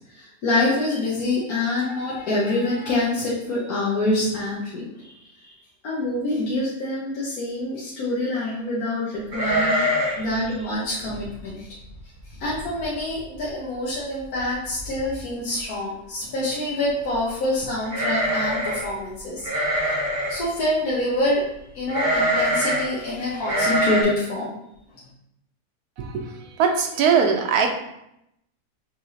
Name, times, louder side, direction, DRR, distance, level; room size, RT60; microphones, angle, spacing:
voice 1, 0.1-5.5 5.8-11.7 12.4-19.5 20.3-21.4 21.7-24.6, left 1 dB, 75° left, -7 dB, 1.4 m, -26 dB
sound 1, 9.3-10.3 10.5-10.6 11.1-11.4 11.9-12.0 12.3-12.8 13.2-13.3 14.4-14.5 14.8-15.2 17.9-18.9 19.4-20.4 21.9-22.9 23.4-24.0, equal, 35° right, 1.3 m, -23 dB
voice 2, 26.0-26.3 26.6-27.7, right 6 dB, 80° right, 3 dB, 1.2 m, -20 dB
5.8 x 3.3 x 2.8 m, 0.81 s
omnidirectional pair, 1.6 m